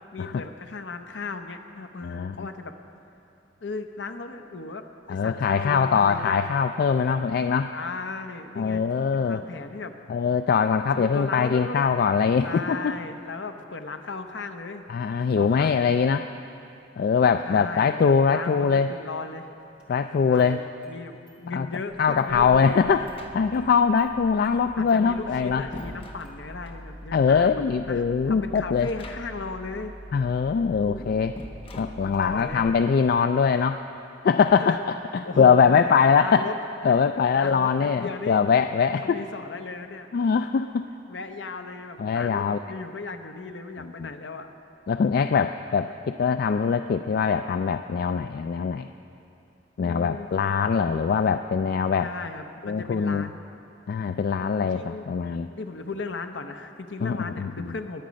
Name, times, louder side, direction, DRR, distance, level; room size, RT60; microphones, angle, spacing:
voice 1, 0.1-2.7 3.6-6.4 7.7-8.8 9.1-9.9 10.6-10.7 10.9-11.8 12.4-14.9 15.3-16.0 17.4-19.5 20.3-20.6 20.9-22.9 24.8-29.9 30.9-31.2 32.0-32.7 34.6-34.8 35.2-35.9 36.2-36.6 36.8-37.0 37.3-38.4 39.0-40.1 41.1-44.5 49.8-50.3 52.0-53.5 54.6-55.1 55.5-58.0, left 3 dB, 75° left, 7 dB, 0.8 m, -36 dB
voice 2, 2.0-2.5 5.1-7.7 8.6-9.4 10.1-12.9 14.9-16.3 17.0-18.9 19.9-20.6 21.5-21.7 22.0-23.1 23.3-25.6 27.1-28.9 30.1-31.3 31.8-33.8 34.2-34.8 35.1-36.5 36.8-39.2 40.1-40.9 42.0-42.6 43.8-44.1 44.9-48.9 49.8-52.1 52.6-53.3 53.9-55.5 57.0-57.7, left 6 dB, 55° left, 9 dB, 0.3 m, -22 dB
Engine starting, 19.8-19.9 20.3-21.0 21.3-21.4 21.7-33.6, equal, 5° right, 2.0 m, -45 dB
sound 1, 22.9-23.8 25.1-26.9 28.7-29.6 29.8-29.9 31.4-32.5, left 1 dB, 30° left, 0.9 m, -44 dB
21.5 x 8.5 x 5.2 m, 2.7 s
head